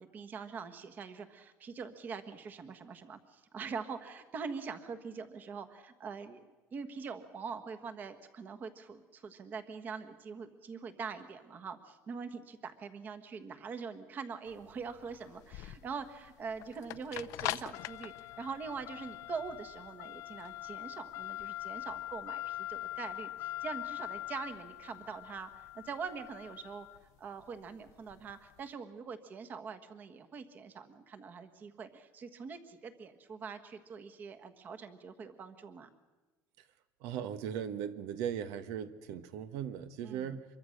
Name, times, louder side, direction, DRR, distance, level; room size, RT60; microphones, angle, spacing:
voice 1, 0.0-6.4 6.7-26.9 27.2-35.9 40.0-40.4, right 5 dB, 30° right, 9 dB, 1.4 m, -43 dB
sound 1, 14.5-28.6, left 16 dB, 70° left, 0.7 m, -43 dB
voice 2, 37.0-40.4, right 9 dB, 85° right, 11 dB, 1.4 m, -38 dB
25.5 x 22.5 x 6.6 m, 1.2 s
cardioid pair, 170°, 6 cm